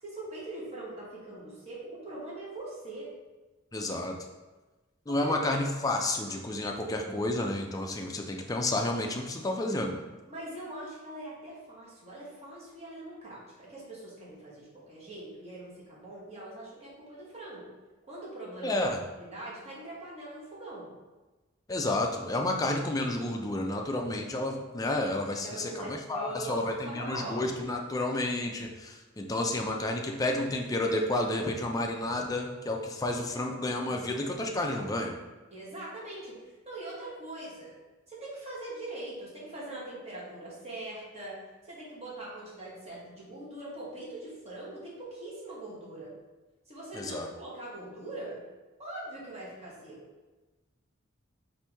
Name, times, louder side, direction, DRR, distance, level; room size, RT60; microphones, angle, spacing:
voice 1, 0.0-3.1 5.1-5.3 10.3-17.7 18.1-18.8 19.2-20.9 25.4-27.5 33.4-34.3 35.5-37.8 38.1-41.4 41.6-46.1 46.7-48.4 48.8-50.0, right 1 dB, 30° right, -7 dB, 1.2 m, -42 dB
voice 2, 3.7-4.2 5.1-9.9 18.6-19.0 21.7-35.1 46.9-47.3, left 1 dB, 15° left, 2 dB, 0.4 m, -31 dB
4.4 x 2.6 x 3.4 m, 1.2 s
head